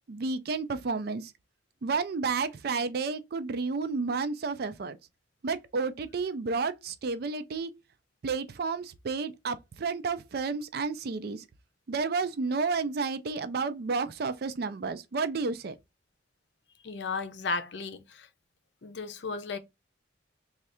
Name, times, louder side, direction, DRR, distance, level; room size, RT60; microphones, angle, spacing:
voice 1, 0.1-1.3 1.8-5.0 5.4-7.7 8.2-11.4 11.9-15.7, right 4 dB, 55° right, 0.4 m, -31 dB
voice 2, 16.8-18.3 18.8-19.6, left 4 dB, 70° left, 0.6 m, -34 dB
3.2 x 2.4 x 4.2 m
head